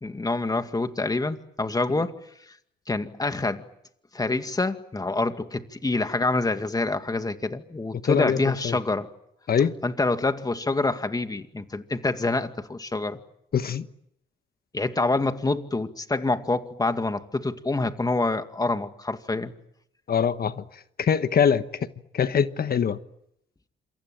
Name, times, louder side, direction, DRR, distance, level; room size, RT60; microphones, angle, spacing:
voice 1, 0.0-2.2 2.9-3.6 4.1-9.1 9.8-13.2 14.7-19.5, left 2 dB, 20° left, 2.2 m, -26 dB
voice 2, 8.0-8.8 9.5-9.7 13.5-13.9 20.1-20.6 21.0-21.6 22.1-23.0, left 7 dB, 50° left, 1.4 m, -23 dB
27.5 x 24.0 x 9.0 m
cardioid pair, 90°, 20 cm